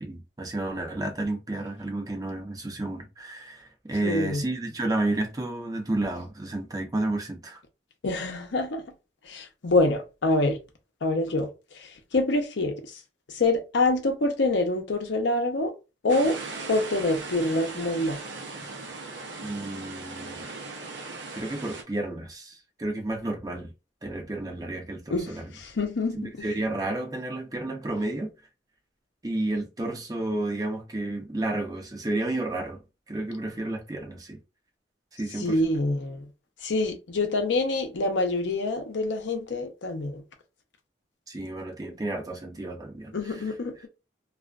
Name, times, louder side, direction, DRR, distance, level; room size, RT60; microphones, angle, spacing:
voice 1, 0.0-7.6 19.4-20.5 21.3-23.7 24.0-25.5 26.1-28.3 29.2-32.8 33.1-34.4 35.1-35.7 41.3-43.5, right 2 dB, 20° right, 0.5 m, -31 dB
voice 2, 4.0-4.4 8.0-8.8 9.3-10.6 11.0-11.5 12.1-12.7 13.3-15.7 16.0-16.4 16.7-18.2 25.1-26.2 35.4-36.3 36.6-40.2 43.1-43.7, left 2 dB, 75° left, 0.6 m, -26 dB
sound 1, 16.1-21.8, right 3 dB, 80° right, 0.6 m, -38 dB
2.4 x 2.2 x 2.3 m
head